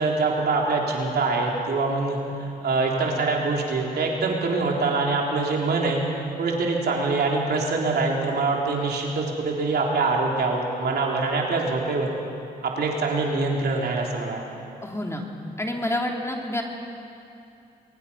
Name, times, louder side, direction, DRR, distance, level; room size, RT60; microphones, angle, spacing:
voice 1, 0.0-2.2 2.6-6.0 6.4-12.1 12.6-14.4, right 3 dB, 70° right, -1 dB, 3.4 m, -24 dB
voice 2, 14.8-15.2 15.6-16.6, left 1 dB, 15° left, 1 dB, 3.2 m, -28 dB
22.5 x 22.0 x 5.7 m, 2.7 s
cardioid pair, 55°, 18 cm